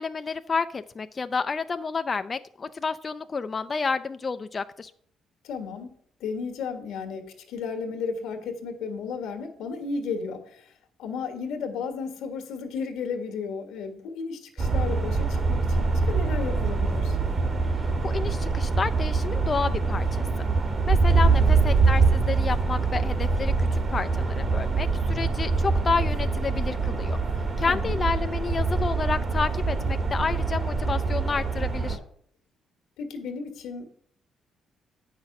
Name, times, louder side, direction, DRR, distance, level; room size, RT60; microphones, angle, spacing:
voice 1, 0.0-4.9 18.0-20.3 20.9-27.2 27.6-32.0, left 4 dB, 35° left, 10 dB, 0.4 m, -30 dB
voice 2, 5.4-10.7 11.0-17.2 21.2-21.8 27.6-28.0 33.0-33.9, left 5 dB, 90° left, 6 dB, 1.5 m, -34 dB
sound 1, 14.6-32.0, right 4 dB, 40° right, 1.6 m, -24 dB
8.6 x 5.8 x 5.8 m, 0.62 s
cardioid pair, 90°, 0 cm